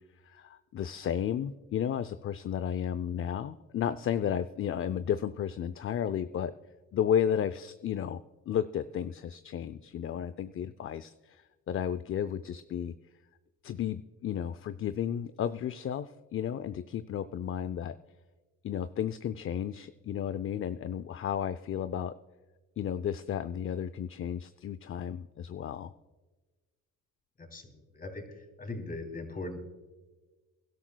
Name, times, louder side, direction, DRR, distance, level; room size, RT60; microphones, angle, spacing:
voice 1, 0.2-6.5 6.9-12.9 13.6-18.0 18.6-22.2 22.8-25.9, left 9 dB, 45° left, 12 dB, 0.5 m, -33 dB
voice 2, 27.4-28.2 28.6-29.6, left 2 dB, 30° left, 4 dB, 3.0 m, -39 dB
23.5 x 12.0 x 2.2 m, 1.2 s
cardioid pair, 90°, 30 cm